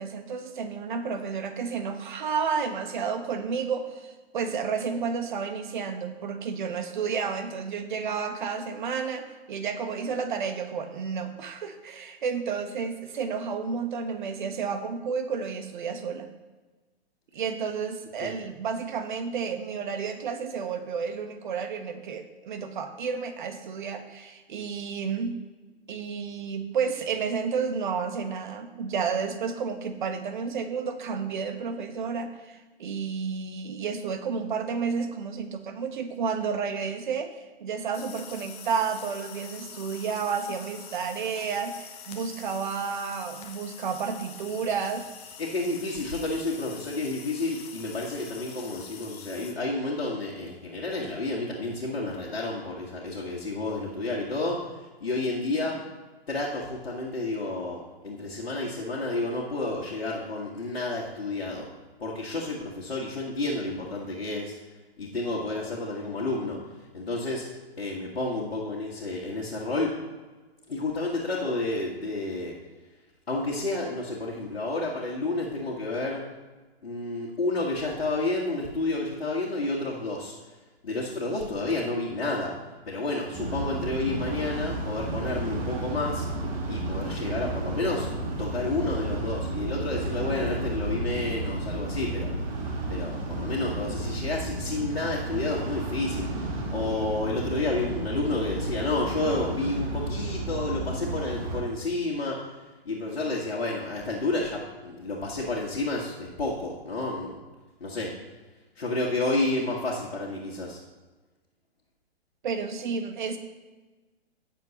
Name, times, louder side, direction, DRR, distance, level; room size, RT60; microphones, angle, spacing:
voice 1, 0.0-16.3 17.3-25.4 25.9-45.1 112.4-113.4, right 6 dB, 50° right, 7 dB, 1.2 m, -31 dB
sound 1, 37.9-49.5, left 7 dB, 20° left, 0.9 m, -45 dB
voice 2, 45.4-55.8 56.3-61.7 62.0-64.5 65.0-66.6 66.9-67.5 67.8-70.0 70.7-72.5 73.3-76.2 76.8-80.3 80.8-82.5 82.8-86.3 86.7-88.1 88.4-92.3 92.9-102.5 102.8-107.4 107.8-108.1 108.8-110.8, left 2 dB, 65° left, -5 dB, 1.7 m, -30 dB
sound 2, 83.3-101.6, right 2 dB, 35° right, 1.7 m, -32 dB
17.0 x 6.8 x 3.0 m, 1.3 s
figure-of-eight pair, 115°, 31 cm